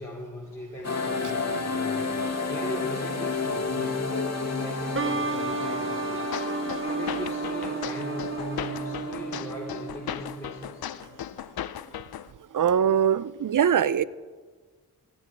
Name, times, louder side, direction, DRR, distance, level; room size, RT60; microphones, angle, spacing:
voice 1, 0.0-2.0 2.5-6.3 6.8-10.9, equal, 5° left, -4 dB, 2.8 m, -38 dB
sound 1, 0.8-11.2, left 4 dB, 45° left, 1.6 m, -32 dB
sound 2, 4.9-10.4, right 5 dB, 35° right, 1.3 m, -33 dB
sound 3, 6.3-12.3, left 10 dB, 70° left, 0.6 m, -37 dB
voice 2, 12.5-14.0, right 8 dB, 55° right, 18 dB, 0.6 m, -22 dB
15.0 x 9.6 x 4.6 m, 1.4 s
cardioid pair, 45°, 38 cm